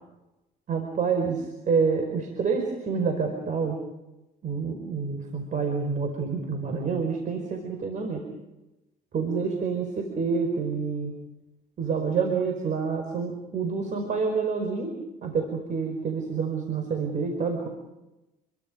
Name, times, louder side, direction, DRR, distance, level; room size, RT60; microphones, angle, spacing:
voice 1, 0.7-3.8 4.4-8.2 9.1-11.1 11.8-14.9 15.2-17.7, right 5 dB, 50° right, 4 dB, 5.1 m, -28 dB
29.0 x 23.5 x 5.3 m, 0.99 s
cardioid pair, 110°, 17 cm